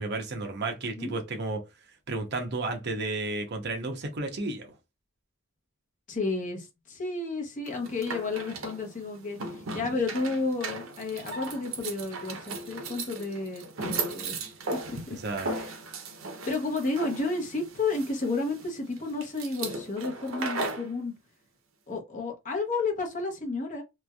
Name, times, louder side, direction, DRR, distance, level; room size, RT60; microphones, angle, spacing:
voice 1, 0.0-1.6 2.1-4.7 15.1-15.5, right 2 dB, 60° right, 0.8 m, -32 dB
voice 2, 6.1-14.4 14.7-15.2 15.5-15.7 16.5-21.1 21.9-23.8, left 3 dB, 40° left, 0.9 m, -32 dB
sound 1, 7.7-20.9, right 3 dB, 85° right, 0.7 m, -37 dB
3.1 x 2.5 x 2.3 m
head